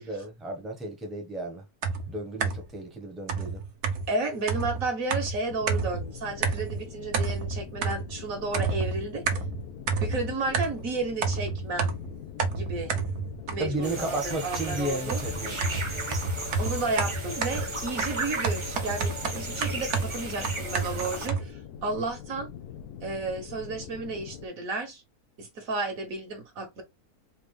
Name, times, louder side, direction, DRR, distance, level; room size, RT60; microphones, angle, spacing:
voice 1, 0.0-1.6 2.1-3.6 13.6-15.6, right 2 dB, ahead, 1.1 m, -33 dB
sound 1, 1.8-2.8 3.3-6.1 6.4-6.9 7.1-8.2 8.5-10.9 11.2-13.9 14.5-21.5, right 4 dB, 80° right, 1.4 m, -30 dB
voice 2, 4.1-9.2 10.0-11.9 12.5-12.9 13.5-15.2 16.6-22.5 23.0-25.0 25.4-26.8, right 3 dB, 65° right, 1.7 m, -32 dB
sound 2, 5.5-24.5, left 8 dB, 85° left, 1.2 m, -44 dB
sound 3, 13.8-21.3, right 2 dB, 20° right, 0.9 m, -35 dB
4.5 x 2.8 x 3.3 m
omnidirectional pair, 1.6 m